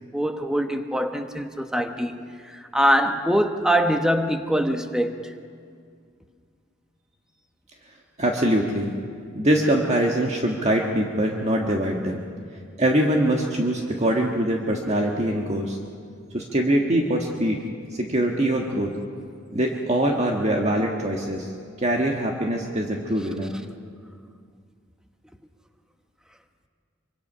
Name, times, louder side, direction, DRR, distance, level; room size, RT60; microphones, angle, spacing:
voice 1, 0.1-2.2 2.4-5.3, equal, 5° right, 1.1 m, -23 dB
voice 2, 8.2-8.9 9.3-12.2 12.8-15.8 16.3-17.6 18.0-18.9 19.5-21.5 21.8-23.5, right 1 dB, 35° right, 1.6 m, -23 dB
24.5 x 24.5 x 5.6 m
head